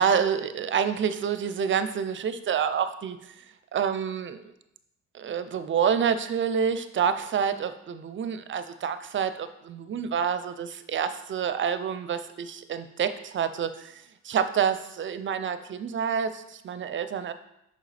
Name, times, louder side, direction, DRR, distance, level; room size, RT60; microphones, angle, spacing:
voice 1, 0.0-3.2 3.7-4.4 5.1-13.9 14.2-17.3, right 7 dB, 40° right, 11 dB, 0.5 m, -28 dB
6.3 x 5.2 x 3.3 m, 0.85 s
cardioid pair, 90°, 30 cm